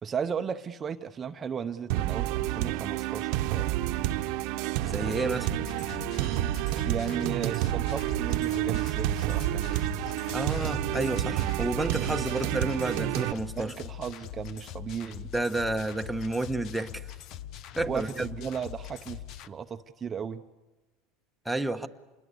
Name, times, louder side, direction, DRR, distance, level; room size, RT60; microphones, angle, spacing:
voice 1, 0.0-3.9 6.8-10.1 13.6-15.3 17.9-20.4, right 7 dB, 25° right, 0.8 m, -35 dB
sound 1, 1.9-13.3, right 15 dB, 65° right, 1.1 m, -29 dB
voice 2, 4.8-5.5 10.3-13.7 15.3-17.1 17.8-18.2 21.4-21.9, right 2 dB, 5° right, 1.2 m, -30 dB
sound 2, 5.4-19.5, left 11 dB, 50° left, 0.9 m, -42 dB
27.5 x 21.5 x 8.3 m
supercardioid pair, 120°, 0 cm